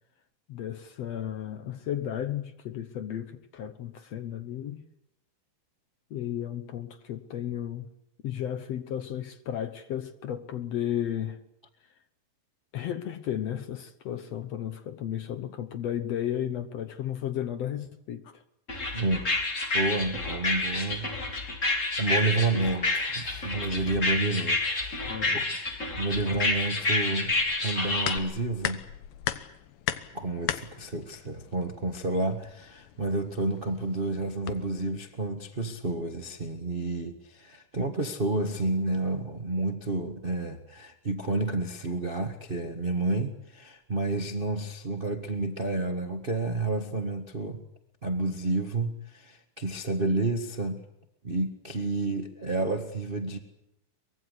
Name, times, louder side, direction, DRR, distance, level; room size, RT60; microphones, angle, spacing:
voice 1, 0.5-4.8 6.1-7.9 8.2-11.4 12.7-18.4 25.1-25.5, left 10 dB, 65° left, 1.8 m, -34 dB
sound 1, 18.7-28.2, left 2 dB, 25° left, 2.8 m, -29 dB
voice 2, 19.7-21.1 22.0-25.0 26.0-27.3 27.6-28.8 30.1-47.6 48.0-50.8 51.2-53.4, right 2 dB, 55° right, 0.6 m, -30 dB
sound 2, 27.2-34.9, left 12 dB, 85° left, 2.8 m, -38 dB
24.0 x 22.0 x 8.2 m
omnidirectional pair, 4.0 m